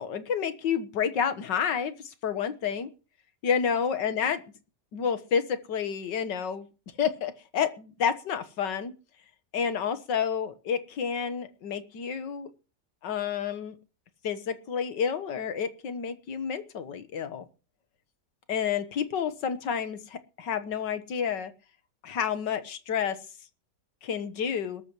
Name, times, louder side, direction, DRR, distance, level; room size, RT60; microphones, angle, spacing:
voice 1, 0.0-1.9 2.2-2.9 3.4-4.4 4.9-6.7 7.0-8.9 9.5-12.5 13.0-13.8 14.2-17.4 18.5-21.5 22.0-23.2 24.0-24.8, left 7 dB, 90° left, 11 dB, 1.9 m, -29 dB
20.5 x 13.5 x 3.1 m, 0.34 s
omnidirectional pair, 1.9 m